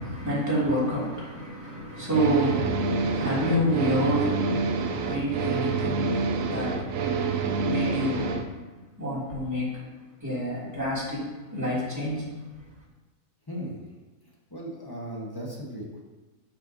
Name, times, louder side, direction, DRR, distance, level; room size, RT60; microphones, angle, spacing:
voice 1, 0.0-8.6 9.0-9.8 10.2-12.3, equal, 10° right, -8 dB, 2.7 m, -29 dB
sound 1, 2.1-8.4, right 4 dB, 70° right, 1.0 m, -27 dB
voice 2, 13.5-13.9 14.2-16.0, equal, 15° left, -3 dB, 1.4 m, -37 dB
10.0 x 5.8 x 2.8 m, 1.2 s
omnidirectional pair, 1.5 m